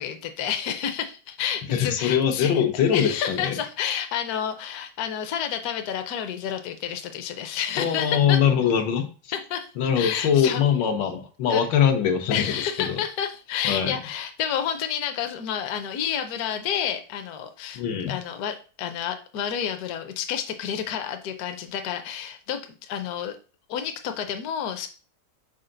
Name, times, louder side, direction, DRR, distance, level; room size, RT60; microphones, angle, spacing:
voice 1, 0.0-2.6 2.9-8.4 9.3-10.6 11.5-11.7 12.3-23.4 23.7-24.9, left 9 dB, 65° left, 7 dB, 1.1 m, -30 dB
voice 2, 1.7-3.6 7.8-9.1 9.8-12.4 12.9-13.0 13.6-14.0 17.7-18.1, left 8 dB, 85° left, 5 dB, 1.6 m, -22 dB
5.7 x 4.4 x 3.8 m, 0.37 s
omnidirectional pair, 2.0 m